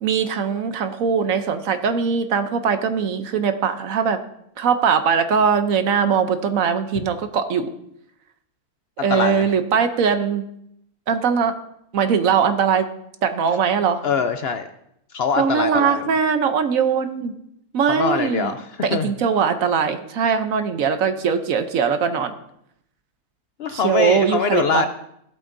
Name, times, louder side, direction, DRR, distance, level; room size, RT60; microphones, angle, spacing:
voice 1, 0.0-4.2 4.6-7.7 9.0-10.4 11.1-11.5 11.9-12.9 13.2-14.0 15.4-17.3 17.7-18.5 18.8-22.3 23.8-24.8, right 6 dB, 65° right, 9 dB, 1.1 m, -21 dB
voice 2, 9.0-9.5 14.0-14.7 15.1-16.1 17.9-19.1 23.6-24.9, left 5 dB, 70° left, 8 dB, 0.5 m, -23 dB
15.0 x 8.6 x 2.6 m, 0.74 s
omnidirectional pair, 1.6 m